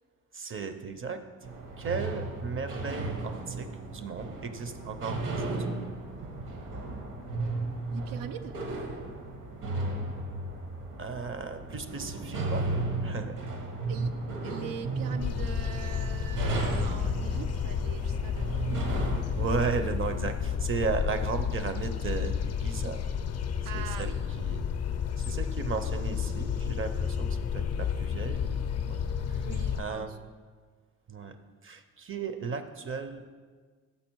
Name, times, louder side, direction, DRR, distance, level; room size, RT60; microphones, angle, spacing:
voice 1, 0.3-1.2 1.8-5.5 11.0-12.7 13.0-13.4 19.3-23.0 23.7-24.1 24.4-24.7 25.2-28.6 28.9-29.0 29.3-29.5 29.8-30.3 31.1-31.3 31.6-33.2, right 5 dB, 40° right, 9 dB, 0.6 m, -35 dB
sound 1, 1.4-19.2, right 2 dB, 65° right, 1.1 m, -34 dB
voice 2, 7.9-8.6 13.9-14.1 14.4-19.7 23.6-24.2 29.4-30.2, right 8 dB, 85° right, 10 dB, 0.5 m, -43 dB
sound 2, 15.2-29.8, left 7 dB, 50° left, 0.5 m, -31 dB
6.6 x 5.4 x 4.5 m, 1.5 s
cardioid pair, 90°, 33 cm